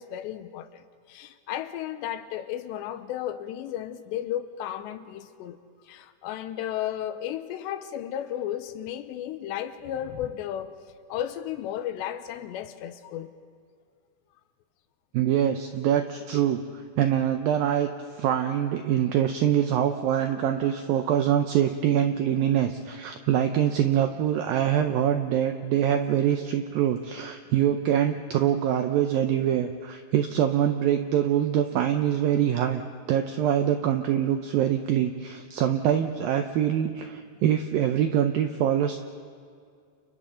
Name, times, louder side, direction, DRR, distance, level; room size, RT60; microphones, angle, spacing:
voice 1, 0.0-5.6 5.8-10.8 11.1-13.3, left 11 dB, 80° left, 3.0 m, -34 dB
voice 2, 15.1-17.9 18.2-32.8 33.1-39.0, right 10 dB, 80° right, 2.0 m, -24 dB
30.0 x 29.5 x 3.9 m
omnidirectional pair, 5.1 m